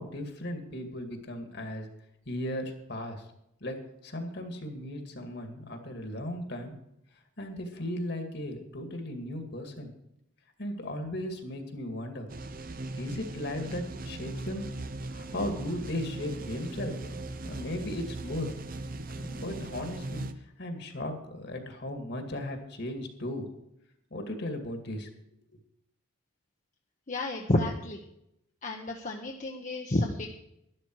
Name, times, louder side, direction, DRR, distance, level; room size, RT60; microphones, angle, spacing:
voice 1, 0.0-1.9 2.3-3.2 3.6-3.8 4.0-6.8 7.4-9.9 10.6-12.3 13.0-14.7 15.1-18.5 19.2-20.3 20.6-23.5 24.1-25.1, left 1 dB, 55° left, 5 dB, 2.2 m, -36 dB
sound 1, 12.3-20.3, right 2 dB, 45° right, 0.8 m, -39 dB
voice 2, 27.1-28.0 28.6-30.3, left 1 dB, 40° left, 1 dB, 1.0 m, -30 dB
12.0 x 12.0 x 4.7 m, 0.80 s
head